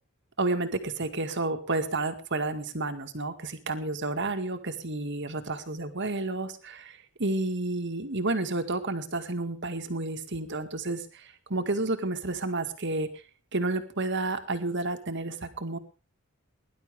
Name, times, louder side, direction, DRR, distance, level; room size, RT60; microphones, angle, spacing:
voice 1, 0.4-13.1 13.5-15.8, right 2 dB, 60° right, 7 dB, 2.1 m, -31 dB
21.5 x 11.5 x 3.6 m, 0.34 s
head